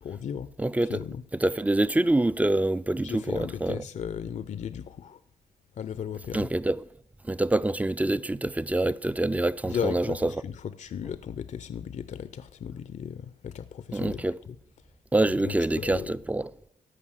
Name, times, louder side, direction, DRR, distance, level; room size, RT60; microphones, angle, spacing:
voice 1, 0.0-0.5 0.8-1.2 3.0-5.2 5.7-6.5 9.7-14.6 15.4-16.1, left 8 dB, 60° left, 0.6 m, -36 dB
voice 2, 0.6-1.0 1.4-3.8 6.3-6.8 7.3-10.3 13.9-14.3 15.1-16.5, right 2 dB, 10° right, 0.4 m, -26 dB
14.0 x 5.4 x 6.4 m
cardioid pair, 60°, 14 cm